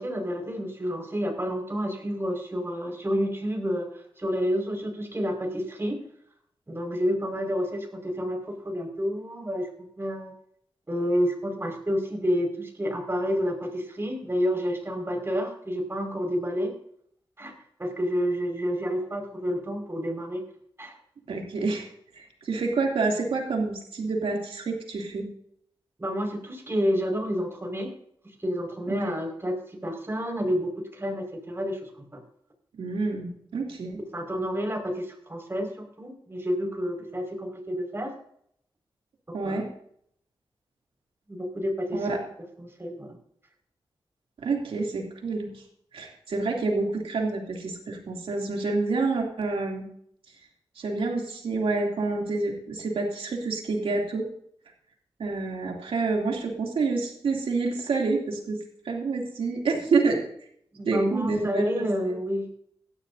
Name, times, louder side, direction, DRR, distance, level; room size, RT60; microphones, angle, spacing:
voice 1, 0.0-6.0 6.7-9.7 10.0-10.3 10.9-16.7 17.4-17.5 17.8-20.4 20.8-21.0 26.0-27.9 28.4-32.2 34.1-38.1 39.3-39.6 41.3-42.3 42.6-43.2 60.7-62.6, equal, 25° right, 2 dB, 5.3 m, -29 dB
voice 2, 21.3-21.9 22.2-25.3 28.9-29.1 32.8-34.0 39.3-39.7 41.9-42.2 44.4-45.5 45.9-49.9 50.8-54.2 55.2-58.6 58.8-60.2 60.8-61.9, right 3 dB, 90° right, 0 dB, 2.9 m, -28 dB
17.5 x 12.5 x 2.7 m, 0.67 s
cardioid pair, 55°, 9 cm